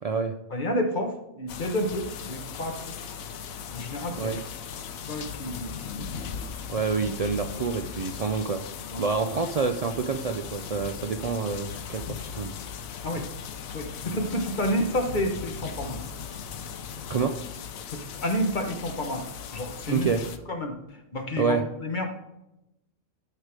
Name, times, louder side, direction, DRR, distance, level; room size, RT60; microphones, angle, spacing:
voice 1, 0.0-0.3 4.2-4.4 6.7-8.6 9.0-12.5 17.1-17.3 19.9-20.2 21.4-21.6, right 5 dB, 80° right, 6 dB, 0.3 m, -27 dB
voice 2, 0.5-2.9 3.7-4.4 5.1-6.3 8.8-9.1 13.0-13.3 13.7-16.0 17.9-19.3 19.5-20.1 20.5-20.8 21.1-22.1, equal, 40° left, 4 dB, 1.2 m, -30 dB
sound 1, 1.5-20.4, left 7 dB, 85° left, 1.1 m, -38 dB
12.0 x 4.8 x 4.9 m, 0.88 s
omnidirectional pair, 1.4 m